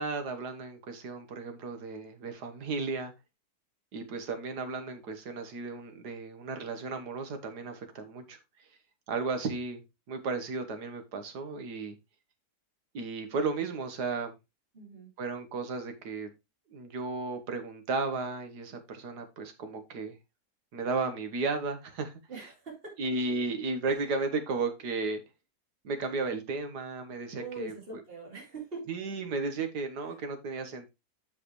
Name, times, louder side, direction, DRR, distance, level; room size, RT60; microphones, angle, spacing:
voice 1, 0.0-3.1 3.9-8.4 9.1-9.8 10.1-12.0 12.9-14.3 15.2-16.3 16.7-20.2 20.7-22.1 23.0-25.2 25.8-27.7 28.9-30.9, right 3 dB, 90° right, 1.8 m, -34 dB
voice 2, 14.7-15.1 22.3-23.0 23.9-24.1 27.3-28.9 30.1-30.2, right 3 dB, 35° right, 2.7 m, -43 dB
7.8 x 6.4 x 3.1 m
omnidirectional pair, 1.7 m